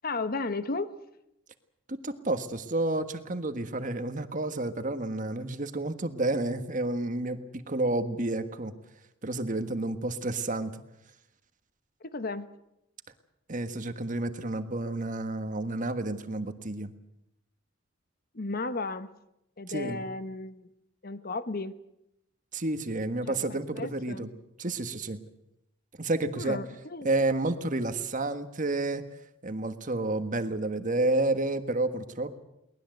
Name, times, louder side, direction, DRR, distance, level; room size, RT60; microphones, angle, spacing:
voice 1, 0.0-0.9 12.0-12.5 18.3-19.1 19.6-20.7 21.0-21.8 23.3-24.3 26.3-27.1, left 3 dB, 50° left, 12 dB, 1.0 m, -34 dB
voice 2, 1.9-8.7 9.2-10.7 13.5-16.9 19.7-20.0 22.5-24.3 24.6-25.2 26.0-26.6 27.0-29.0 29.4-32.3, right 2 dB, 40° right, 9 dB, 1.5 m, -30 dB
23.0 x 19.0 x 8.0 m, 0.83 s
head